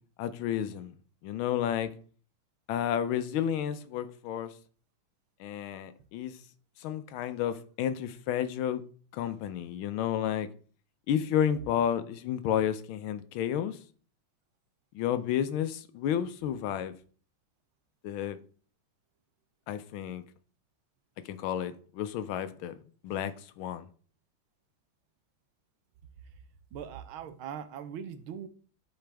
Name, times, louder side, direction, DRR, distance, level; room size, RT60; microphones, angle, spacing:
voice 1, 0.2-0.9 1.2-1.9 2.7-4.5 5.4-6.4 6.8-8.8 9.1-10.5 11.1-13.8 14.9-16.9 18.0-18.4 19.7-20.2 21.2-22.8 23.0-23.9, left 9 dB, 85° left, 1.5 m, -31 dB
voice 2, 26.7-28.5, right 8 dB, 90° right, 1.6 m, -40 dB
10.5 x 4.9 x 3.4 m
omnidirectional pair, 2.2 m